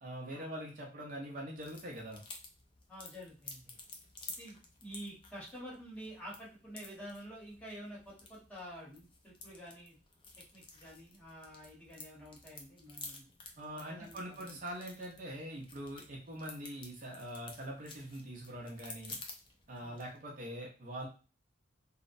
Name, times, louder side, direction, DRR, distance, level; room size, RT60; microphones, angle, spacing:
voice 1, 0.0-2.2 13.6-19.2 19.7-21.1, right 1 dB, 45° right, -1 dB, 0.5 m, -43 dB
sound 1, 1.5-20.2, left 3 dB, 25° left, 0.4 m, -52 dB
voice 2, 2.9-3.8 4.4-10.0 10.5-13.2 13.9-14.6 19.8-20.0, equal, 10° left, -6 dB, 0.9 m, -49 dB
2.6 x 2.0 x 2.5 m, 0.35 s
head